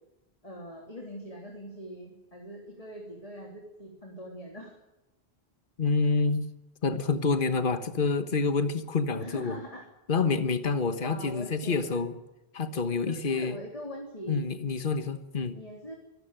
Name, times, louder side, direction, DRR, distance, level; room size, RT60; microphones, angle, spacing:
voice 1, 0.4-4.7 9.1-9.9 11.0-12.0 13.1-14.4 15.5-15.9, equal, 35° left, 0 dB, 3.4 m, -42 dB
voice 2, 5.8-6.5 6.8-9.6 10.1-12.1 12.5-13.6 14.3-15.6, left 4 dB, 55° left, 10 dB, 1.6 m, -27 dB
25.0 x 14.0 x 9.0 m, 0.98 s
omnidirectional pair, 1.0 m